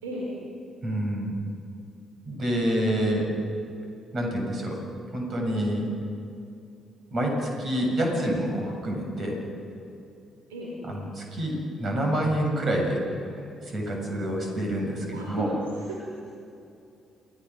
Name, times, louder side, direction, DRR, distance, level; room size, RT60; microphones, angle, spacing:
voice 1, 0.0-0.3 10.5-10.7 15.1-15.5 15.7-16.2, right 1 dB, 80° right, -4 dB, 3.5 m, -35 dB
voice 2, 0.8-1.3 2.2-3.3 4.1-4.8 5.1-5.9 7.1-9.4 10.9-13.0 13.4-15.5, right 1 dB, 45° right, 0 dB, 7.6 m, -27 dB
29.0 x 18.0 x 6.3 m, 2.6 s
figure-of-eight pair, 40°, 0 cm